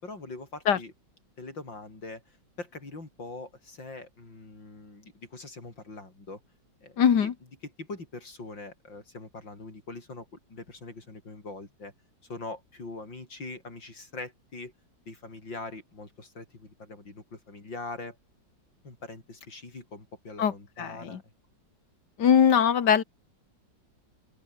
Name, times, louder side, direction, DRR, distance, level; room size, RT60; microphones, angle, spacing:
voice 1, 0.0-0.9 1.4-6.4 6.8-7.3 7.6-11.9 12.3-14.7 15.1-18.2 18.8-21.2, left 3 dB, 80° left, 6.9 m, -42 dB
voice 2, 7.0-7.3 20.4-20.5 20.8-21.2 22.2-23.0, left 8 dB, 65° left, 2.1 m, -21 dB
open air
omnidirectional pair, 2.0 m